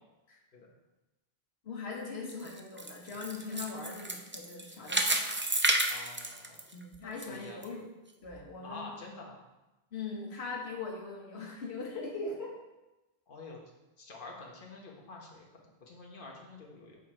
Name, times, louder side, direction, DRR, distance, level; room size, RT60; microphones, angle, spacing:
voice 1, 1.6-5.2 6.7-7.9 8.2-8.9 9.9-12.5, left 4 dB, 90° left, -1 dB, 1.5 m, -40 dB
sound 1, 2.3-7.3 7.6-7.7 8.3-8.4, right 1 dB, 20° right, 0.4 m, -31 dB
voice 2, 5.9-6.6 6.9-7.6 8.6-9.4 13.3-13.6 14.0-17.0, left 3 dB, 55° left, -1 dB, 1.4 m, -48 dB
7.2 x 5.7 x 4.4 m, 1.0 s
omnidirectional pair, 1.1 m